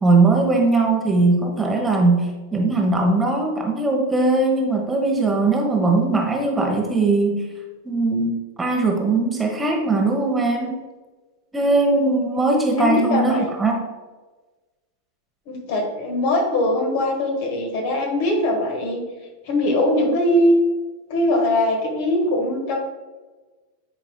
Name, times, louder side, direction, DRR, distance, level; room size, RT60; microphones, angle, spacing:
voice 1, 0.0-7.4 7.8-8.3 8.6-10.8 11.5-13.8, right 3 dB, 10° right, 1 dB, 1.0 m, -20 dB
voice 2, 12.8-13.5 15.5-19.0 19.4-20.5 21.1-22.8, left 1 dB, 50° left, 2 dB, 1.6 m, -21 dB
10.5 x 4.7 x 2.3 m, 1.3 s
figure-of-eight pair, 90°, 0 cm